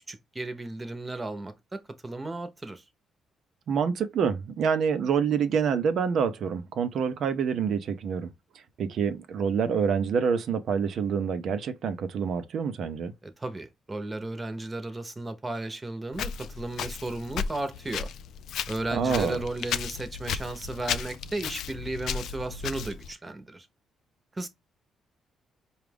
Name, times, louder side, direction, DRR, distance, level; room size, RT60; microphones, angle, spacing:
voice 1, 0.1-2.8 13.2-18.1 18.7-23.7 24.4-24.5, right 2 dB, 20° right, 0.9 m, -34 dB
voice 2, 3.7-8.3 8.8-13.1 18.9-19.4, right 6 dB, 65° right, 0.6 m, -27 dB
Walk footsteps, 16.1-23.1, left 7 dB, 75° left, 0.4 m, -35 dB
4.8 x 2.4 x 3.4 m
cardioid pair, 90°, 0 cm